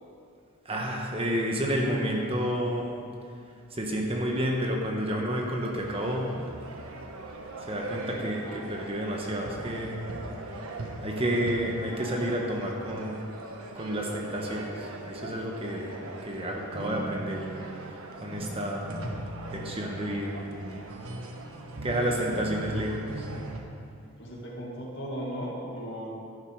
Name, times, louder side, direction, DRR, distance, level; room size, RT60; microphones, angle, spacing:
voice 1, 0.6-2.9 3.7-6.3 7.6-10.1 11.0-13.2 13.7-16.0 16.2-17.5 18.2-18.9 19.5-20.3 21.8-23.3, equal, 25° right, 0 dB, 1.3 m, -30 dB
sound 1, 5.8-23.6, right 2 dB, 80° right, 1.2 m, -39 dB
voice 2, 24.2-26.1, equal, 55° left, -3 dB, 2.4 m, -36 dB
11.5 x 11.0 x 4.9 m, 2.4 s
head